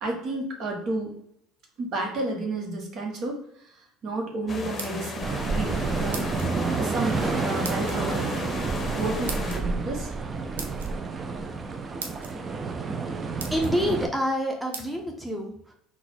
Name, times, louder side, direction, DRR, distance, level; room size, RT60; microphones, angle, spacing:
voice 1, 0.0-1.1 1.8-6.3 6.7-8.6 8.9-10.1, right 2 dB, 55° right, 0 dB, 1.1 m, -32 dB
sound 1, 4.5-9.6, left 3 dB, 35° left, 0.7 m, -35 dB
sound 2, 4.6-5.4 6.1-6.5 7.6-8.0 9.3-9.6 10.6-10.9 11.6-11.7 12.0-12.3 12.9-13.0 13.4-13.8 14.7-14.9, right 5 dB, 90° right, 0.5 m, -37 dB
sound 3, 5.2-14.1, right 4 dB, 30° right, 0.5 m, -29 dB
voice 2, 13.5-15.7, equal, 5° right, 1 dB, 0.9 m, -27 dB
3.9 x 2.4 x 4.3 m, 0.71 s
hypercardioid pair, 70°, 0 cm